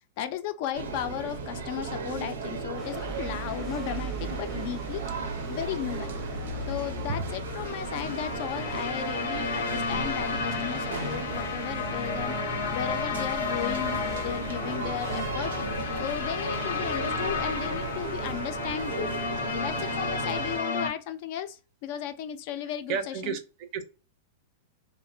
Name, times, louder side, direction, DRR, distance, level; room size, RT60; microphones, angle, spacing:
voice 1, 0.2-5.0 5.5-6.1 6.7-12.4 12.7-15.5 16.0-19.1 19.4-23.4, left 10 dB, 50° left, 0.3 m, -35 dB
sound 1, 0.7-20.6, right 4 dB, 90° right, 0.6 m, -36 dB
sound 2, 2.8-18.4, equal, 5° left, 0.6 m, -41 dB
sound 3, 7.4-20.9, left 4 dB, 90° left, 0.6 m, -32 dB
voice 2, 22.9-23.8, right 6 dB, 40° right, 0.5 m, -32 dB
2.7 x 2.0 x 2.6 m
supercardioid pair, 145°, 0 cm